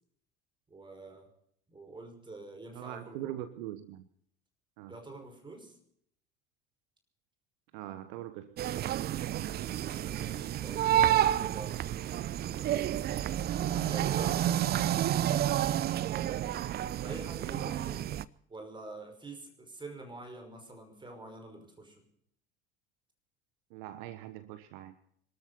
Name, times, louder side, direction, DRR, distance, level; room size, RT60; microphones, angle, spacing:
voice 1, 0.7-1.3 1.7-3.4 4.9-5.8 10.0-11.8 12.5-13.0 13.6-14.4 16.1-16.6 17.0-18.0 18.5-22.1, right 2 dB, 15° right, 5 dB, 5.5 m, -47 dB
voice 2, 2.7-4.1 4.8-5.0 7.7-8.7 23.7-25.0, right 13 dB, 60° right, 12 dB, 1.2 m, -42 dB
sound 1, 8.6-18.2, right 11 dB, 35° right, 0.6 m, -30 dB
26.0 x 13.5 x 4.1 m, 0.68 s
figure-of-eight pair, 65°, 29 cm